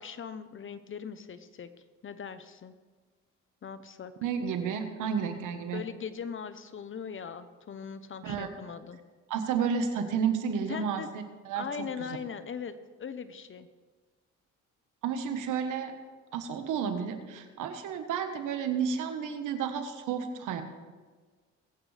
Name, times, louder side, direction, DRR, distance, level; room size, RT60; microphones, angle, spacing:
voice 1, 0.0-1.7 2.0-2.7 3.6-4.1 5.7-9.0 10.7-11.1 11.5-12.7 13.0-13.7, left 6 dB, 40° left, 12 dB, 0.9 m, -40 dB
voice 2, 4.2-5.8 8.2-8.5 9.3-11.9 15.0-15.9 16.3-20.6, right 7 dB, 85° right, 7 dB, 1.5 m, -31 dB
22.5 x 8.9 x 3.5 m, 1.4 s
cardioid pair, 90°, 30 cm